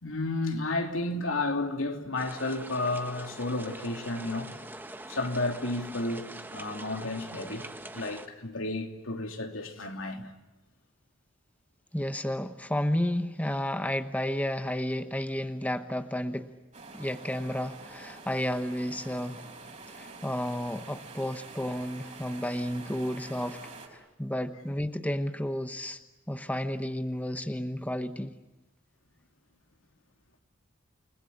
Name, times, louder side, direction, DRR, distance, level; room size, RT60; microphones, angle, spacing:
voice 1, 0.0-4.5 5.1-7.7 7.9-10.3, left 2 dB, 75° left, 3.0 m, -32 dB
sound 1, 2.2-8.3, right 1 dB, 10° right, 1.5 m, -43 dB
voice 2, 11.9-16.5 16.9-19.4 19.9-23.7 24.2-26.0 26.3-28.3, left 1 dB, 10° left, 1.0 m, -32 dB
sound 2, 16.7-23.9, right 3 dB, 35° right, 4.9 m, -47 dB
29.5 x 20.5 x 9.9 m
head